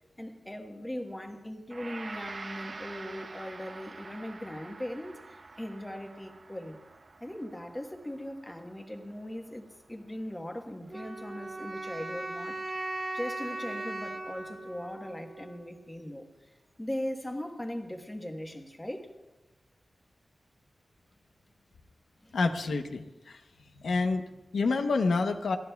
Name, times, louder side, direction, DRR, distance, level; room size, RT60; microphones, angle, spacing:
voice 1, 0.2-6.8 7.2-12.6 13.1-19.1 22.2-22.3, left 1 dB, 10° left, 1.2 m, -39 dB
Gong, 1.7-10.9, right 3 dB, 45° right, 0.5 m, -47 dB
sound 1, 10.9-15.9, right 2 dB, 25° right, 1.8 m, -38 dB
voice 2, 22.3-23.4 23.8-25.6, left 3 dB, 90° left, 0.9 m, -28 dB
29.5 x 13.5 x 2.3 m
wide cardioid pair, 125°, 0 cm